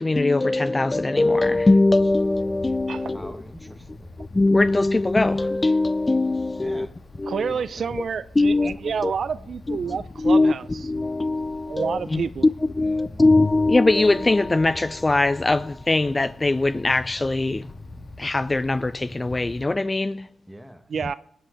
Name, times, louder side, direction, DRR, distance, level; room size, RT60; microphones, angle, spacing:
voice 1, 0.0-3.3 4.2-6.9 7.2-7.5 8.4-9.1 9.7-12.2 12.6-17.7 18.2-20.3, left 2 dB, 25° left, 0.4 m, -21 dB
Wind, 1.2-19.6, left 2 dB, 40° left, 2.1 m, -44 dB
voice 2, 3.0-4.1 6.6-7.0 7.4-7.9 12.8-13.3 20.5-20.9, equal, 5° right, 1.4 m, -43 dB
voice 3, 7.3-10.9 11.7-12.5 20.9-21.1, right 6 dB, 60° right, 0.4 m, -29 dB
20.0 x 7.5 x 5.1 m
cardioid pair, 65°, 0 cm